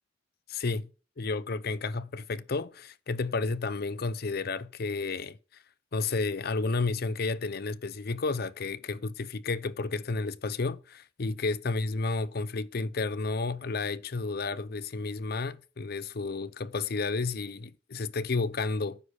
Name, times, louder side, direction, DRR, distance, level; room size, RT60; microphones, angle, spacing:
voice 1, 0.5-0.9 1.2-5.4 5.9-19.0, left 3 dB, 55° left, 0.6 m, -31 dB
9.4 x 6.4 x 6.7 m
head